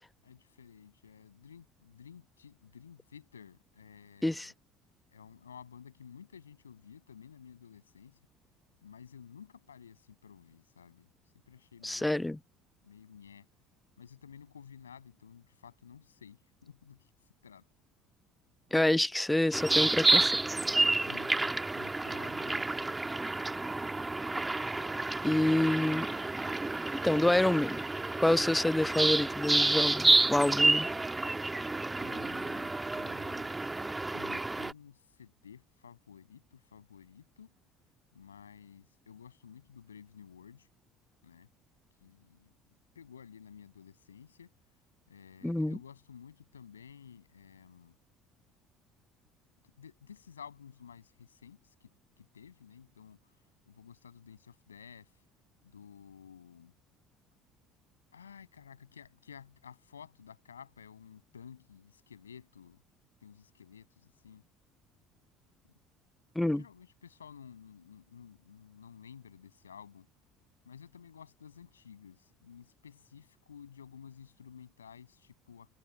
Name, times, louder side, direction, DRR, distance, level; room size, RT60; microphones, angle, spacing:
voice 1, 0.2-4.5 5.1-8.2 8.8-11.1 11.3-12.4 12.8-13.5 14.0-17.1 17.4-17.7 21.0-21.3 21.8-22.8 32.0-33.7 34.1-37.5 38.1-40.7 41.2-41.5 42.0-42.5 42.9-44.5 45.1-47.9 49.6-51.9 52.2-53.4 53.7-55.2 55.6-56.7 58.1-62.8 63.2-64.4 66.5-70.1 70.6-75.7, left 7 dB, 80° left, 7.6 m, -53 dB
voice 2, 11.8-12.4 18.7-20.4 25.2-26.1 27.0-27.8 28.2-30.9 45.4-45.8 66.4-66.6, left 1 dB, 10° left, 0.5 m, -27 dB
sound 1, 19.5-34.7, right 2 dB, 15° right, 2.0 m, -29 dB
figure-of-eight pair, 60°, 0 cm